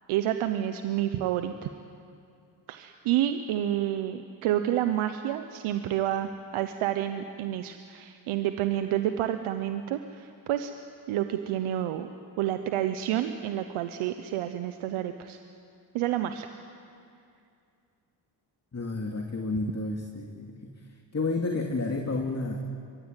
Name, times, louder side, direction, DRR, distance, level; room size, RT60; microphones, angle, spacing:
voice 1, 0.1-1.7 2.7-10.7 11.1-12.1 12.4-15.4 15.9-16.5, right 12 dB, 85° right, 8 dB, 1.1 m, -29 dB
voice 2, 18.7-20.7 21.1-22.6, left 3 dB, 30° left, 2 dB, 2.8 m, -31 dB
23.5 x 22.5 x 9.1 m, 2.4 s
supercardioid pair, 55°, 48 cm